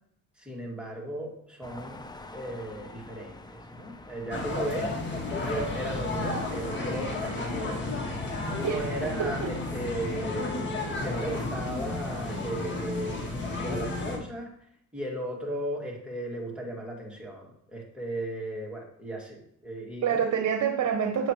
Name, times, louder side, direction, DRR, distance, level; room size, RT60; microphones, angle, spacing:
voice 1, 0.4-2.0 2.3-4.9 5.3-8.0 8.5-10.6 11.0-14.5 14.9-20.3, right 1 dB, 5° right, -3 dB, 2.3 m, -36 dB
sound 1, 1.6-11.5, left 2 dB, 15° left, 0.6 m, -46 dB
sound 2, 4.3-14.2, left 2 dB, 40° left, 1.6 m, -32 dB
voice 2, 8.6-9.5 20.0-21.3, right 8 dB, 60° right, 5 dB, 0.9 m, -27 dB
7.9 x 6.2 x 3.1 m, 0.71 s
cardioid pair, 90°, 30 cm